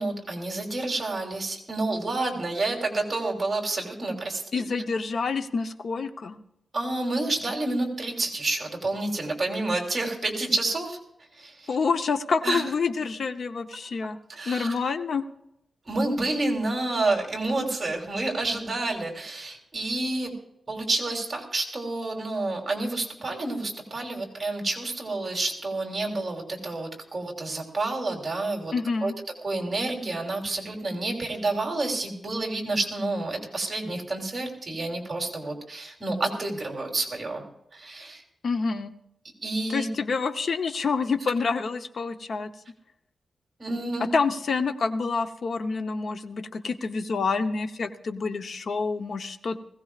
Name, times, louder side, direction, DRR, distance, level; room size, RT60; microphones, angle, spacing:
voice 1, 0.0-4.4 6.7-11.0 11.4-11.7 12.4-12.6 14.3-14.8 15.9-20.3 20.7-28.7 29.0-29.1 29.4-37.4 37.7-38.2 39.4-39.9 43.6-44.1, right 2 dB, 25° right, 0 dB, 3.2 m, -29 dB
voice 2, 4.5-6.4 11.7-14.2 14.5-15.2 28.7-29.1 38.4-38.9 39.7-42.5 44.0-49.6, left 4 dB, 60° left, 8 dB, 0.9 m, -27 dB
20.5 x 16.0 x 2.4 m, 0.83 s
wide cardioid pair, 125°, 0 cm